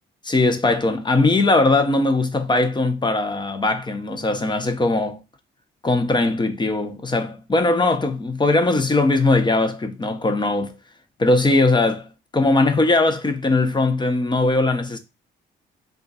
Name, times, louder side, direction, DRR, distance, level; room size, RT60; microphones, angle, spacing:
voice 1, 0.2-5.2 5.8-10.7 11.2-12.0 12.3-15.0, left 2 dB, 20° left, 0.7 m, -20 dB
3.7 x 2.4 x 3.9 m
cardioid pair, 90°, 20 cm